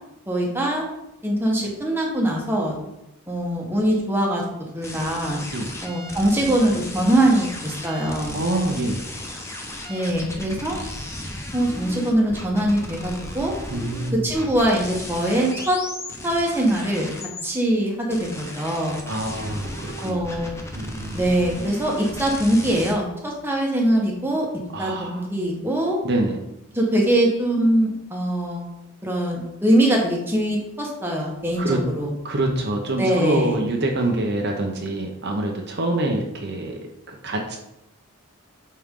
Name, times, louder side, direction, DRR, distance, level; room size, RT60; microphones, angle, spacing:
voice 1, 0.3-0.8 1.2-2.7 3.3-4.4 4.7-5.4 5.8-8.4 9.9-10.8 11.5-13.5 14.1-15.8 16.2-17.1 17.4-19.0 20.0-20.6 21.1-24.5 24.8-26.0 26.7-28.6 29.0-32.1 33.0-33.6, right 1 dB, 10° right, -2 dB, 1.3 m, -22 dB
sound 1, 4.8-17.5 18.1-22.9, left 1 dB, 15° left, 0.9 m, -35 dB
voice 2, 8.3-9.0 13.7-14.4 19.1-20.3 20.7-21.2 24.7-25.3 26.0-26.4 31.6-31.8 32.2-37.6, right 1 dB, 50° right, 1 dB, 0.9 m, -25 dB
8.7 x 4.3 x 3.7 m, 0.87 s
head